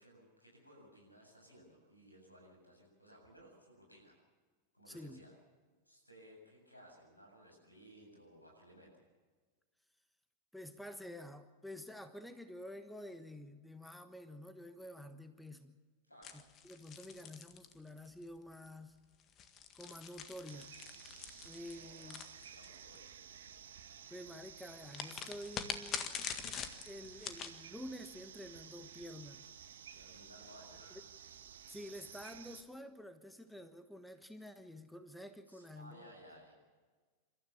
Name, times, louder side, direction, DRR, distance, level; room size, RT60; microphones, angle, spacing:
voice 1, 0.0-4.2 4.7-5.3 5.8-9.0 16.0-16.4 21.7-23.2 29.9-31.0 35.5-36.5, equal, 85° left, 1 dB, 7.9 m, -59 dB
voice 2, 4.9-5.2 10.5-15.8 16.3-19.0 19.7-20.7 21.4-22.3 24.1-26.1 26.8-29.4 31.7-36.1, left 1 dB, ahead, 9 dB, 1.3 m, -49 dB
sound 1, 16.2-18.2 19.2-23.0 24.9-27.6, left 8 dB, 30° left, 1.7 m, -44 dB
sound 2, 20.5-32.6, right 8 dB, 60° right, 1.4 m, -54 dB
29.0 x 13.5 x 7.3 m, 1.4 s
figure-of-eight pair, 90°, 0 cm